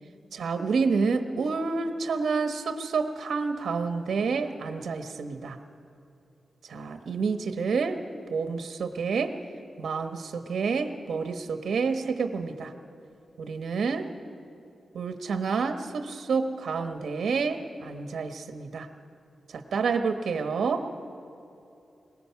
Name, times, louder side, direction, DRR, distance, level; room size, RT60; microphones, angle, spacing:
voice 1, 0.3-5.6 6.7-8.0 8.3-9.4 9.8-12.7 13.4-14.1 14.9-18.9 19.7-20.9, right 5 dB, 80° right, 7 dB, 1.1 m, -29 dB
22.5 x 20.5 x 5.9 m, 2.7 s
wide cardioid pair, 150°, 0 cm